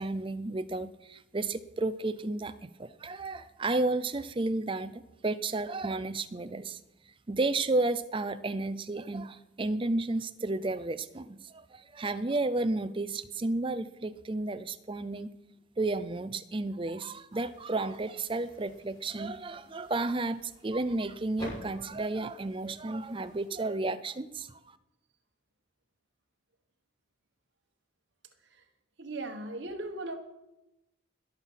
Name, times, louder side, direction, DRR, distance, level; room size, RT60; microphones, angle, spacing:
voice 1, 0.0-6.8 7.3-15.3 15.8-24.8, right 2 dB, 25° right, 13 dB, 0.5 m, -32 dB
Clothes dropped (Hoodie Leather Jacket Large Coat), 17.3-23.5, right 1 dB, 20° left, 6.5 m, -50 dB
voice 2, 29.0-30.2, right 2 dB, 55° right, 5 dB, 1.4 m, -38 dB
21.0 x 7.4 x 5.7 m, 0.94 s
head